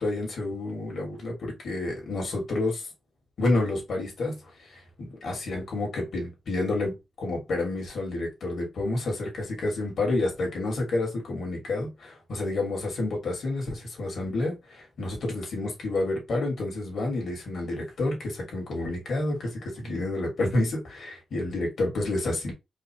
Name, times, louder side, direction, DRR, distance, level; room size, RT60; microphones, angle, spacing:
voice 1, 0.0-2.8 3.4-4.4 5.0-22.5, left 2 dB, 65° left, 2.1 m, -29 dB
4.6 x 2.2 x 3.1 m
wide cardioid pair, 130°, 0 cm